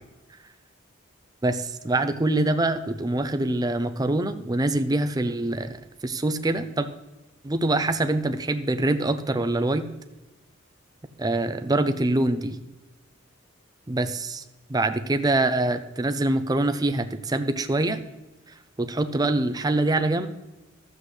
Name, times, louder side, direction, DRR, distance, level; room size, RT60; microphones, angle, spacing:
voice 1, 1.4-5.8 6.0-6.9 7.4-9.9 11.2-12.6 13.9-14.4 14.7-18.0 18.8-20.3, right 2 dB, 20° right, 9 dB, 0.5 m, -24 dB
13.0 x 7.9 x 3.2 m, 1.1 s
head